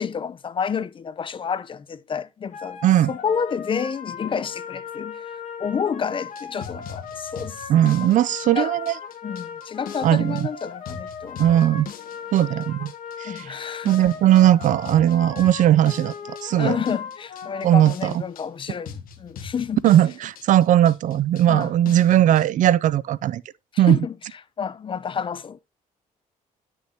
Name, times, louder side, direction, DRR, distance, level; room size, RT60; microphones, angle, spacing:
voice 1, 0.0-2.8 3.1-5.2 5.6-7.6 8.0-8.2 8.6-8.7 9.2-11.8 13.2-13.9 16.5-19.8 21.5-21.7 23.7-24.1 24.6-25.6, left 6 dB, 35° left, 0.6 m, -29 dB
sound 1, 2.5-17.6, left 6 dB, 55° left, 2.0 m, -38 dB
sound 2, 6.3-22.5, left 7 dB, 75° left, 1.4 m, -41 dB
voice 2, 7.7-8.9 10.0-10.5 11.4-11.9 12.3-12.9 13.2-13.4 13.8-16.8 17.6-18.1 19.8-23.4 23.8-24.0, right 12 dB, 60° right, 0.4 m, -18 dB
10.5 x 6.3 x 2.8 m
cardioid pair, 105°, 15 cm